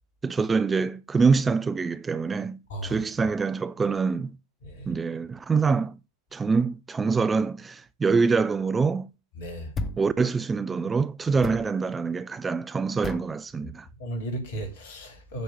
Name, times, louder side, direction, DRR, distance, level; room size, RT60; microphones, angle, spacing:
voice 1, 0.2-4.4 4.9-5.9 6.3-9.1 10.0-13.9, right 4 dB, 15° right, 0.3 m, -25 dB
voice 2, 2.7-3.0 4.6-4.9 9.3-9.7 13.6-13.7 14.0-15.4, right 1 dB, 60° left, 2.6 m, -35 dB
Plucking an Elastic Band, 9.7-10.1 11.4-11.7 13.0-13.3, left 3 dB, 20° left, 0.8 m, -33 dB
9.1 x 3.1 x 6.6 m
figure-of-eight pair, 90°, 0 cm